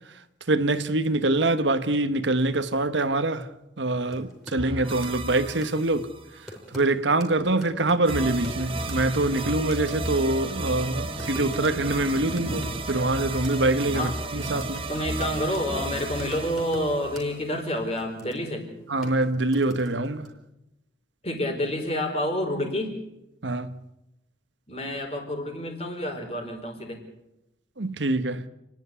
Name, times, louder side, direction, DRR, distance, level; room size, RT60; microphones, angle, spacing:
voice 1, 0.5-3.5 3.8-6.1 6.7-14.9 18.9-20.3 23.4-23.8 27.8-28.5, right 2 dB, 85° right, 1.2 m, -25 dB
sound 1, 4.1-4.6 4.9-5.3 5.6-5.8 6.5-6.9 7.2-7.3 7.6-8.6 8.9-9.0 9.3-13.0 13.4-13.7 14.0-15.7 16.0-16.9 17.1-17.3 17.8-18.6 19.0-20.3, left 1 dB, ahead, 4.6 m, -43 dB
sound 2, 4.6-6.4 8.0-17.8, right 2 dB, 30° right, 1.5 m, -33 dB
sound 3, 7.8-12.6, equal, 80° left, 7.6 m, -42 dB
voice 2, 14.9-18.6 21.2-23.0 24.7-27.0, left 1 dB, 35° left, 4.7 m, -29 dB
30.0 x 10.5 x 9.6 m
head